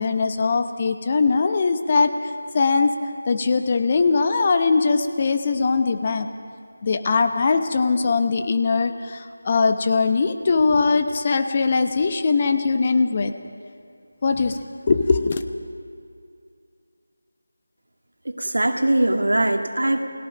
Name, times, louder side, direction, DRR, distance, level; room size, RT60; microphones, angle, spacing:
voice 1, 0.0-2.9 3.3-6.3 6.8-13.3 14.2-14.6 14.9-15.4, left 4 dB, 30° left, 8 dB, 1.0 m, -21 dB
voice 2, 18.3-20.0, right 1 dB, 70° right, 5 dB, 2.1 m, -21 dB
29.5 x 18.0 x 5.1 m, 2.4 s
figure-of-eight pair, 165°, 0 cm